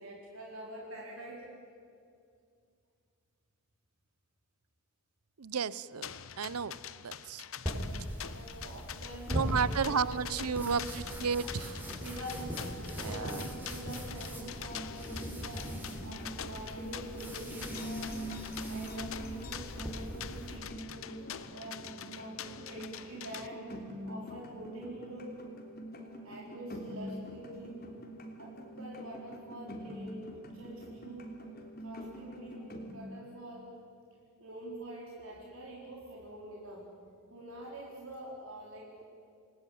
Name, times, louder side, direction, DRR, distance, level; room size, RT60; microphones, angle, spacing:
voice 1, 0.0-1.5 7.8-10.9 12.0-15.7 16.0-18.1 18.7-23.7 24.1-25.3 26.2-27.8 28.4-30.2 30.5-31.3 31.8-33.7 34.4-36.9 37.3-39.0, right 1 dB, 70° right, -3 dB, 4.0 m, -46 dB
voice 2, 5.4-6.1 6.4-6.8 7.0-7.4 9.3-10.8 11.2-11.8 13.0-13.4, right 6 dB, 85° right, 18 dB, 0.7 m, -32 dB
sound 1, 6.0-23.5, left 9 dB, 65° left, 0.9 m, -45 dB
sound 2, 7.7-20.6, equal, 10° right, 4.7 m, -40 dB
sound 3, 14.3-32.9, equal, 45° left, 3.3 m, -44 dB
28.5 x 20.0 x 9.4 m, 2.3 s
head